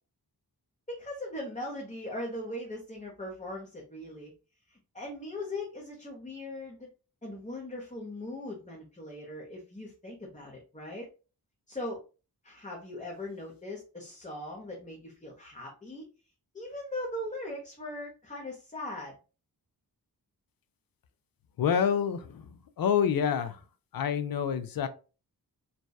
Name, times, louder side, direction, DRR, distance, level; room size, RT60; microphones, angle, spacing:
voice 1, 0.9-4.3 4.7-6.9 7.2-11.1 11.7-12.0 12.4-16.0 16.5-19.2, left 1 dB, 20° left, 0.7 m, -39 dB
voice 2, 21.6-22.4 22.8-23.6 23.9-24.9, left 8 dB, 60° left, 0.5 m, -27 dB
2.7 x 2.1 x 2.2 m
wide cardioid pair, 65°, 40 cm